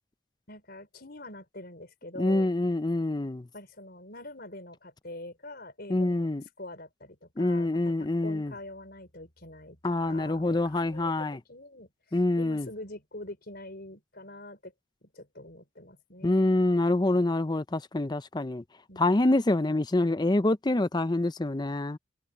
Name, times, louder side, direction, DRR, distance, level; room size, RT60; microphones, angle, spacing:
voice 1, 0.5-2.5 3.5-6.3 6.6-14.7 15.0-16.6 18.9-19.3, left 1 dB, 50° left, 5.3 m, -45 dB
voice 2, 2.2-3.5 5.9-6.4 7.4-8.5 9.8-11.4 12.1-12.7 16.2-18.6 19.0-22.0, left 2 dB, 20° left, 0.5 m, -26 dB
head